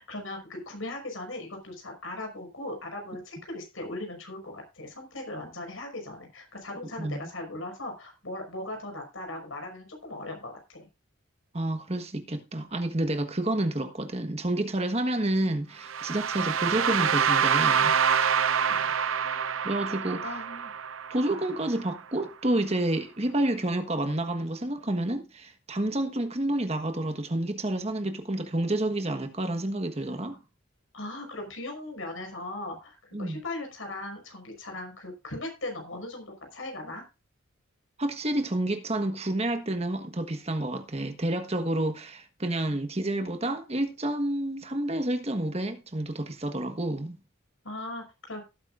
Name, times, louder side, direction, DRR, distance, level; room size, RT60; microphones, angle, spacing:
voice 1, 0.0-10.8 18.7-18.9 20.2-20.7 30.9-37.0 47.6-48.4, left 2 dB, 75° left, 5.5 m, -38 dB
voice 2, 11.5-17.9 19.6-20.2 21.1-30.4 33.1-33.4 38.0-47.2, right 1 dB, 30° right, 1.4 m, -29 dB
sound 1, 15.8-21.8, right 7 dB, 80° right, 0.7 m, -26 dB
17.5 x 9.1 x 2.5 m
head